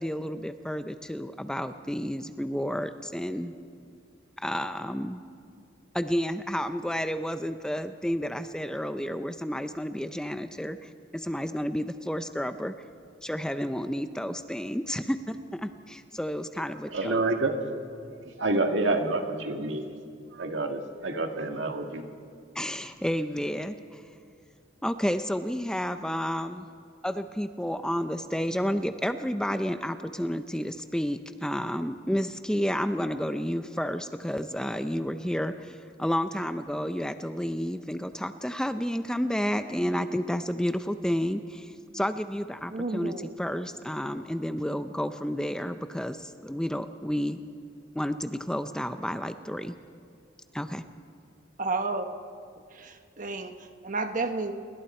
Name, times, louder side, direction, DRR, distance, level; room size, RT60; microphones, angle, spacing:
voice 1, 0.0-3.5 4.4-5.2 5.9-12.7 13.2-17.2 22.5-24.0 24.8-26.7 27.0-43.1 43.4-47.4 47.9-49.8 50.5-50.9, equal, 5° left, 9 dB, 0.5 m, -31 dB
voice 2, 16.9-17.5 18.2-20.0 20.3-22.1, right 2 dB, 75° right, 4 dB, 1.8 m, -28 dB
voice 3, 42.7-43.3 51.6-52.1 52.7-54.5, right 3 dB, 45° right, 6 dB, 1.2 m, -32 dB
29.0 x 21.0 x 4.3 m, 2.3 s
head